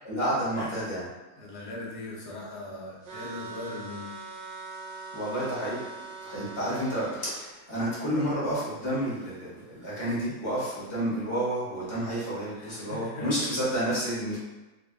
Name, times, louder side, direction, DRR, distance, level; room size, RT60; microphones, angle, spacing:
voice 1, 0.0-1.0 5.1-5.8 6.2-14.4, right 1 dB, 20° left, -9 dB, 1.3 m, -30 dB
voice 2, 1.4-4.1 12.4-13.7, left 2 dB, 85° left, -5 dB, 1.4 m, -40 dB
sound 1, 3.0-7.2, right 4 dB, 60° right, 0.9 m, -41 dB
3.0 x 2.7 x 3.5 m, 1.1 s
omnidirectional pair, 1.6 m